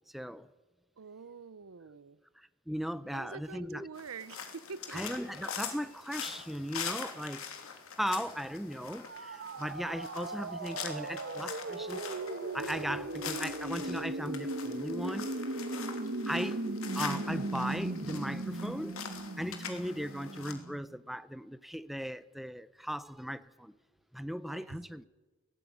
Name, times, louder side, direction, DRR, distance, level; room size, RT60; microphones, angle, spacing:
voice 1, 0.1-0.5 2.4-3.9 4.9-7.5 8.0-12.1 12.5-15.4 16.3-16.7 16.9-23.8 24.1-25.1, equal, ahead, 0.7 m, -37 dB
voice 2, 1.0-2.2 3.1-5.0 24.4-24.8, right 5 dB, 90° right, 0.7 m, -46 dB
sound 1, 3.9-20.5, left 7 dB, 85° left, 3.0 m, -44 dB
sound 2, 9.0-20.8, right 2 dB, 60° right, 1.3 m, -38 dB
18.0 x 17.0 x 9.6 m
head